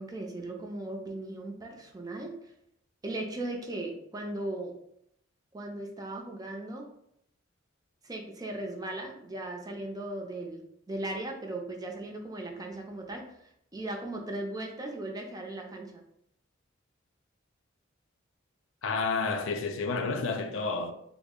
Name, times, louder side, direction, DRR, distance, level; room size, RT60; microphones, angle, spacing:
voice 1, 0.0-2.5 3.0-4.8 5.5-6.9 8.0-16.0, right 2 dB, 20° right, 0.5 m, -38 dB
voice 2, 18.8-20.9, left 4 dB, 75° left, 0.4 m, -30 dB
3.6 x 2.0 x 3.6 m
head